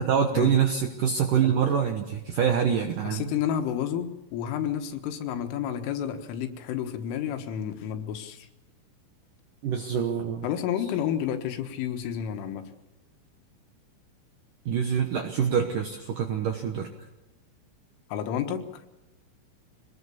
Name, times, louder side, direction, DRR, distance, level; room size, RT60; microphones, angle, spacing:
voice 1, 0.0-3.3 9.6-10.5 14.7-16.9, right 7 dB, 70° right, 4 dB, 2.0 m, -25 dB
voice 2, 3.0-8.5 10.4-12.7 18.1-18.8, left 9 dB, 85° left, 6 dB, 4.0 m, -30 dB
24.0 x 19.5 x 7.0 m, 1.0 s
omnidirectional pair, 5.6 m